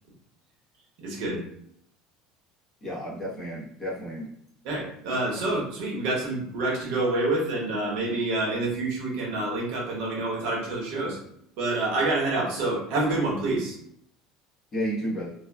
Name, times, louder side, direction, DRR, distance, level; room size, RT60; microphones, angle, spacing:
voice 1, 1.0-1.4 4.6-11.2 11.6-13.8, right 2 dB, 60° right, -3 dB, 1.0 m, -27 dB
voice 2, 2.8-4.3 14.7-15.3, equal, 20° left, -7 dB, 1.0 m, -32 dB
3.0 x 2.2 x 2.3 m, 0.70 s
cardioid pair, 165°, 0 cm